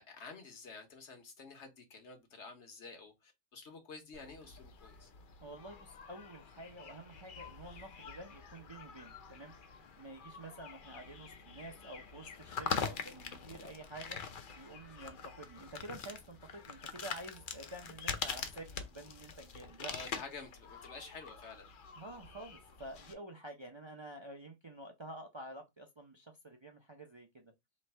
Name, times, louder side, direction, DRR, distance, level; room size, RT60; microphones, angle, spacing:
voice 1, 0.0-5.1 19.9-21.7, left 4 dB, 70° left, 1.4 m, -50 dB
sound 1, 4.1-23.1, left 6 dB, 55° left, 0.7 m, -44 dB
voice 2, 5.4-9.5 10.0-14.2 14.5-19.9 22.0-27.5, right 1 dB, 35° right, 0.5 m, -49 dB
3.2 x 3.1 x 4.4 m
omnidirectional pair, 1.2 m